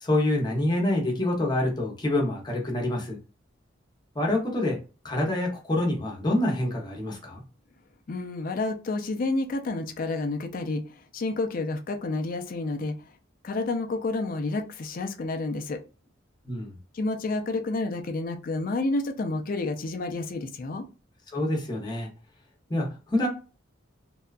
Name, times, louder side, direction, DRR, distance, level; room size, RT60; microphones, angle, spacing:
voice 1, 0.0-3.2 4.1-4.8 5.0-7.4 16.4-16.7 21.3-22.1 22.7-23.3, left 1 dB, 20° left, 0.8 m, -26 dB
voice 2, 8.1-10.8 11.1-12.9 13.4-15.8 16.9-20.8, left 2 dB, 45° left, 0.4 m, -29 dB
2.7 x 2.3 x 2.4 m
head